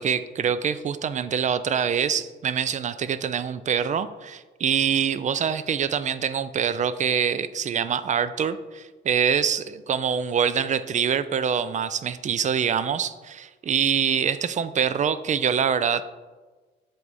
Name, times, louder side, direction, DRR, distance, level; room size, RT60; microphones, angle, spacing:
voice 1, 0.0-16.0, right 7 dB, 40° right, 14 dB, 0.4 m, -25 dB
7.5 x 3.5 x 4.1 m, 1.3 s
cardioid pair, 90°, 20 cm